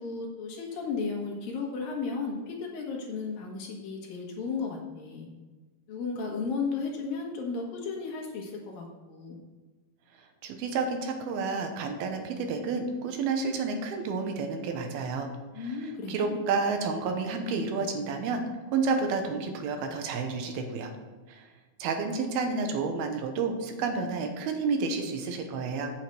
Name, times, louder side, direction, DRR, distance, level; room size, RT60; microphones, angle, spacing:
voice 1, 0.0-5.3 5.9-9.4 15.5-16.4, left 4 dB, 70° left, 0 dB, 3.0 m, -34 dB
voice 2, 10.4-15.3 15.6-18.4 18.7-20.9 21.3-21.5 21.8-25.9, right 4 dB, 85° right, 5 dB, 2.9 m, -30 dB
9.0 x 5.7 x 6.5 m, 1.3 s
omnidirectional pair, 4.4 m